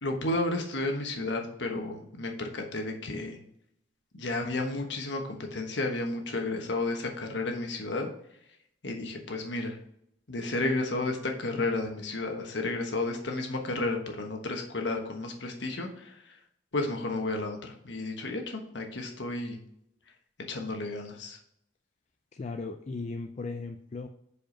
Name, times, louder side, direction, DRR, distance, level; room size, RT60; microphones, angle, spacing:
voice 1, 0.0-3.4 4.1-8.1 8.8-9.8 10.3-16.3 16.7-19.6 20.5-21.4, left 2 dB, 70° left, 3 dB, 1.2 m, -32 dB
voice 2, 22.3-24.1, left 3 dB, 40° left, 5 dB, 0.4 m, -37 dB
5.0 x 5.0 x 5.0 m, 0.74 s
head